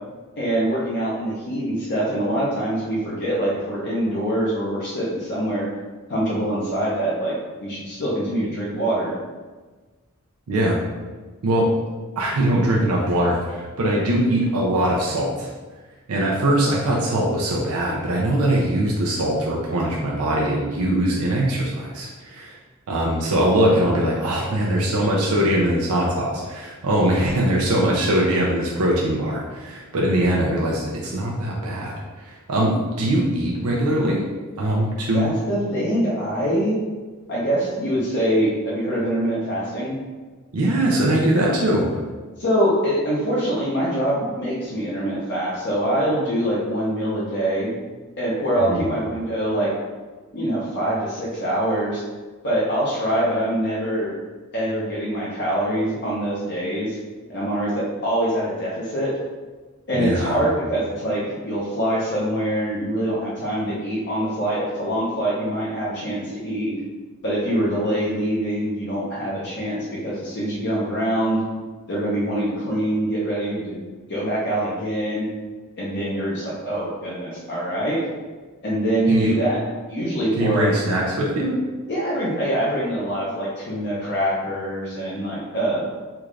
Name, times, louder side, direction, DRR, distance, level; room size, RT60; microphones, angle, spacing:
voice 1, 0.4-5.7 6.1-7.3 7.6-9.1 35.1-36.8 37.3-39.9 42.4-47.8 48.2-49.7 50.3-52.0 52.4-54.1 54.5-57.0 57.3-59.1 59.9-66.7 67.2-71.4 71.9-73.8 74.1-75.3 75.8-78.0 78.6-79.6 79.9-80.7 81.9-85.9, right 1 dB, 55° left, -7 dB, 0.8 m, -24 dB
voice 2, 10.5-10.8 11.4-11.7 12.2-15.5 16.1-22.6 22.9-34.3 34.6-35.3 40.5-42.0 48.6-48.9 59.9-60.4 79.1-79.4 80.4-81.6, right 1 dB, 80° right, -3 dB, 0.5 m, -21 dB
3.4 x 2.4 x 3.2 m, 1.3 s
head